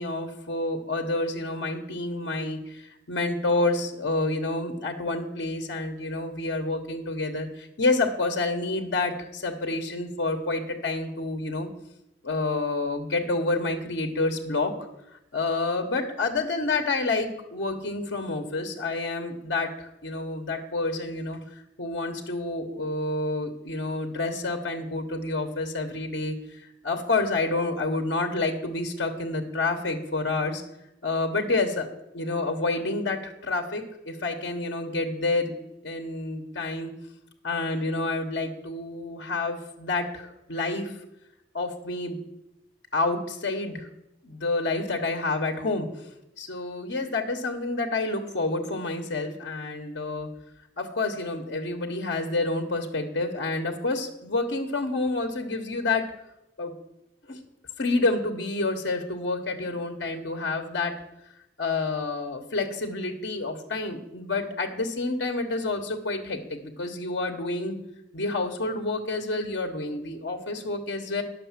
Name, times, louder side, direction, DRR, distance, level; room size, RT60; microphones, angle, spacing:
voice 1, 0.0-11.7 12.2-14.7 15.3-21.4 21.8-30.6 31.0-31.9 32.1-35.5 35.8-36.9 37.4-40.9 41.5-42.2 42.9-43.9 44.2-45.9 46.4-50.3 50.8-56.1 56.6-56.7 57.3-57.4 57.8-60.9 61.6-67.8 68.1-71.2, left 3 dB, 90° left, 4 dB, 1.2 m, -28 dB
10.0 x 6.7 x 7.3 m, 0.87 s
head